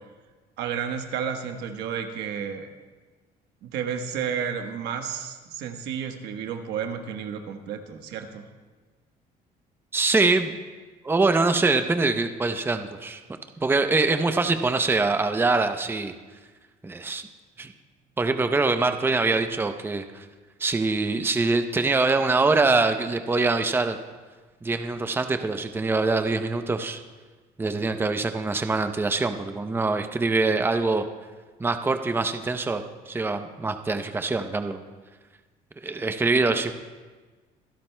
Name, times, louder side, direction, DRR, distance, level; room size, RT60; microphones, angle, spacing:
voice 1, 0.6-2.7 3.6-8.5, right 7 dB, 80° right, 5 dB, 1.2 m, -31 dB
voice 2, 9.9-10.5 11.0-13.2 13.6-16.1 16.8-17.2 17.6-17.7 18.2-20.2 20.6-24.0 24.6-27.0 27.6-31.0 31.6-34.8 35.8-36.7, right 3 dB, 15° right, 7 dB, 0.6 m, -24 dB
25.5 x 12.0 x 2.2 m, 1.3 s
cardioid pair, 110°, 17 cm